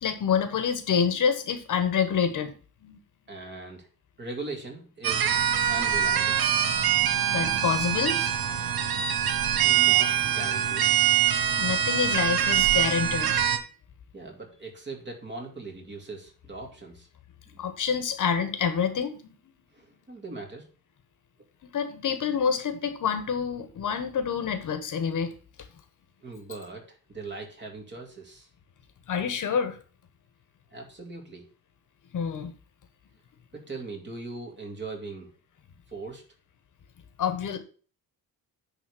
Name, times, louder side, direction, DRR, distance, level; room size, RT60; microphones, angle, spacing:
voice 1, 0.0-2.5 2.8-3.0 7.1-8.2 11.6-13.3 17.6-19.2 21.7-25.3 29.1-29.8 32.1-32.5 37.2-37.6, left 7 dB, 55° left, 9 dB, 1.2 m, -27 dB
voice 2, 3.3-3.9 4.2-5.3 5.7-6.4 9.6-10.9 14.1-17.1 17.5-17.7 19.7-20.7 26.2-28.5 30.7-31.5 33.5-35.3 35.9-36.2, right 3 dB, 30° right, 1 dB, 2.4 m, -40 dB
sound 1, 5.0-13.6, right 10 dB, 75° right, 1.1 m, -24 dB
9.6 x 3.7 x 6.5 m, 0.39 s
wide cardioid pair, 165°, 37 cm